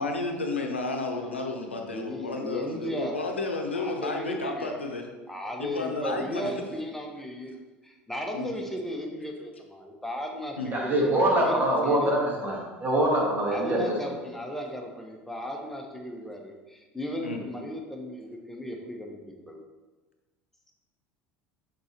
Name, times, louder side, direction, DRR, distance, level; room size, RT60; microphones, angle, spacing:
voice 1, 0.0-5.1 5.6-6.7 8.3-8.5 10.6-10.7 17.2-17.4, left 3 dB, 85° left, 3 dB, 0.7 m, -32 dB
voice 2, 1.8-3.2 3.7-4.8 5.3-7.5 7.8-12.2 13.5-19.6, equal, 5° left, 1 dB, 1.1 m, -36 dB
voice 3, 10.7-13.8 14.1-14.2, right 1 dB, 30° right, -2 dB, 2.1 m, -24 dB
6.7 x 3.9 x 4.4 m, 1.2 s
figure-of-eight pair, 70°, 6 cm